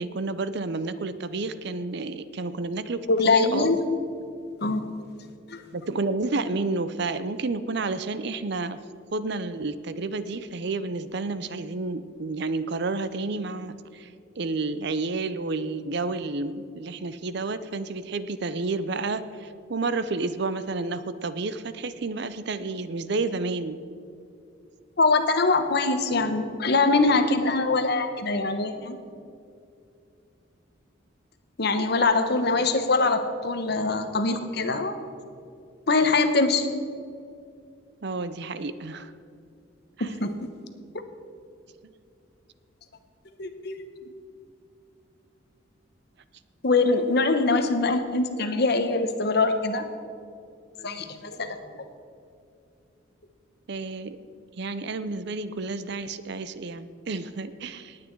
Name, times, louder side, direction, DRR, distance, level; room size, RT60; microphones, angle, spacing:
voice 1, 0.0-3.7 5.7-8.8 9.1-23.8 38.0-39.1 40.0-40.1 53.7-54.2 54.6-58.0, right 3 dB, 55° right, 13 dB, 0.6 m, -30 dB
voice 2, 3.1-3.8 4.6-4.8 5.5-5.7 25.0-29.0 31.6-35.0 35.9-36.7 40.0-40.3 43.4-43.8 46.6-49.8 50.8-51.6, left 3 dB, 50° left, 8 dB, 1.0 m, -23 dB
18.5 x 8.6 x 4.6 m, 2.5 s
head